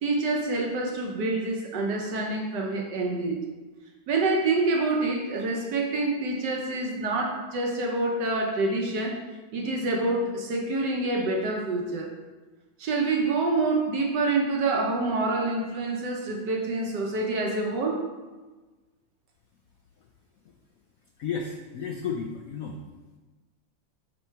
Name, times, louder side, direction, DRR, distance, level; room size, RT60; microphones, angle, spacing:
voice 1, 0.0-3.5 4.1-9.2 9.5-12.1 12.8-18.1, right 2 dB, 65° right, 1 dB, 1.4 m, -27 dB
voice 2, 21.2-22.8, left 6 dB, 85° left, 2 dB, 0.7 m, -33 dB
6.9 x 4.3 x 4.5 m, 1.3 s
omnidirectional pair, 2.2 m